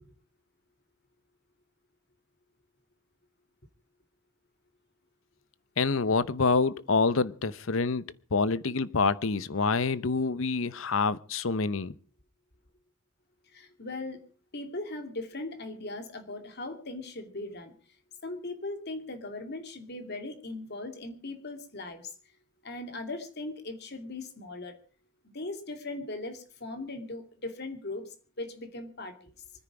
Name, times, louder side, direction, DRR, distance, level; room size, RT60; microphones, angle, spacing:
voice 1, 5.8-8.0 8.3-11.9, left 4 dB, 70° left, 0.8 m, -27 dB
voice 2, 13.5-14.2 14.5-17.7 18.2-22.0 22.6-24.7 25.3-28.1 28.4-29.1, left 2 dB, 50° left, 2.6 m, -39 dB
25.5 x 10.0 x 4.9 m
head